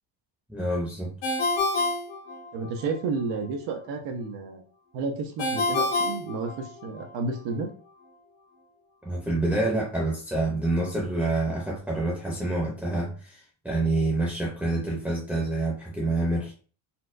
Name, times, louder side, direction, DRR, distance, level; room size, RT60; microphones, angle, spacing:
voice 1, 0.5-1.1 9.0-16.5, right 2 dB, 5° right, -5 dB, 0.6 m, -27 dB
Ringtone, 1.2-2.9 5.4-7.1, left 2 dB, 80° left, 1.1 m, -27 dB
voice 2, 2.5-4.6 4.9-7.7, right 4 dB, 90° right, 3 dB, 0.8 m, -31 dB
4.3 x 2.2 x 2.5 m, 0.39 s
cardioid pair, 175°, 42 cm